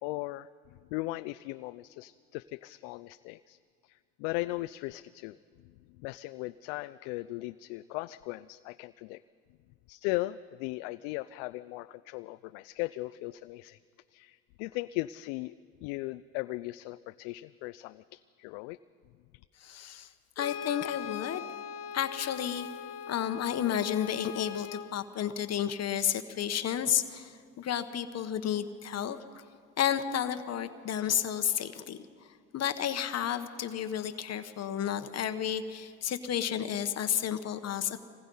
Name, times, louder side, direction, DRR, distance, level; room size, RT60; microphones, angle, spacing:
voice 1, 0.0-3.6 3.8-5.4 5.6-9.2 9.9-13.8 14.1-15.5 15.8-18.8, left 19 dB, 85° left, 12 dB, 0.5 m, -38 dB
voice 2, 19.6-20.1 20.4-21.4 21.9-22.7 23.1-29.4 29.8-32.0 32.5-38.1, left 9 dB, 50° left, 10 dB, 1.1 m, -32 dB
Brass instrument, 20.4-24.9, left 8 dB, 70° left, 1.1 m, -41 dB
25.5 x 19.5 x 5.5 m, 2.1 s
supercardioid pair, 80°, 33 cm